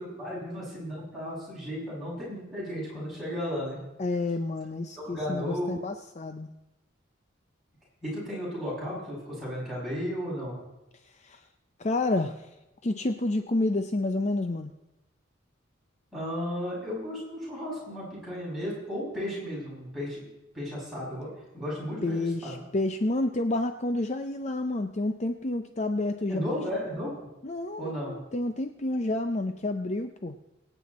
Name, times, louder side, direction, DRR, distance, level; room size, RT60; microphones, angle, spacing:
voice 1, 0.0-3.8 5.0-5.8 8.0-10.6 16.1-20.2 20.5-22.6 26.3-27.3 27.8-28.2, equal, ahead, -8 dB, 6.8 m, -34 dB
voice 2, 4.0-6.5 11.2-11.4 11.8-12.5 12.8-14.7 22.0-26.4 27.4-30.4, left 2 dB, 35° left, 8 dB, 0.6 m, -29 dB
23.5 x 9.2 x 4.2 m, 0.98 s
head